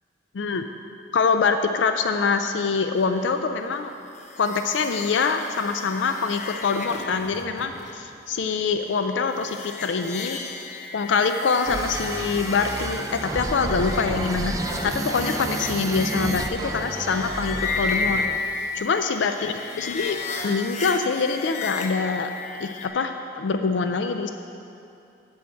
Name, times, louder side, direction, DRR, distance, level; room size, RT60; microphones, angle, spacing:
voice 1, 0.3-0.6 1.1-3.9 4.4-10.4 10.9-18.2 18.7-20.2 20.4-22.3 22.6-24.3, left 5 dB, 75° left, 7 dB, 0.4 m, -24 dB
sound 1, 4.1-22.9, left 4 dB, 40° left, 0.7 m, -34 dB
sound 2, 11.7-18.4, right 2 dB, 20° right, 0.4 m, -31 dB
10.5 x 4.6 x 7.5 m, 2.7 s
head